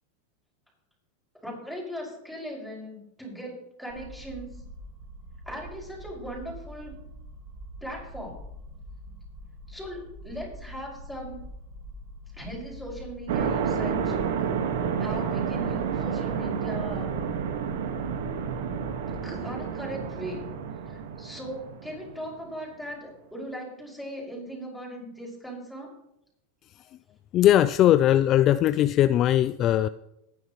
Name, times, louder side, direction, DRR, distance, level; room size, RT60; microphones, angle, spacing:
voice 1, 1.4-4.6 5.5-7.0 7.8-8.4 9.7-11.5 12.3-14.2 15.0-17.1 19.2-20.6 20.8-25.9, equal, ahead, -3 dB, 6.0 m, -38 dB
sound 1, 3.9-19.4, equal, 45° right, 2.5 m, -44 dB
sound 2, 13.3-22.3, right 7 dB, 80° right, 1.6 m, -30 dB
voice 2, 27.3-29.9, left 12 dB, 40° left, 13 dB, 0.4 m, -20 dB
20.5 x 10.5 x 3.2 m, 0.81 s
supercardioid pair, 135°, 0 cm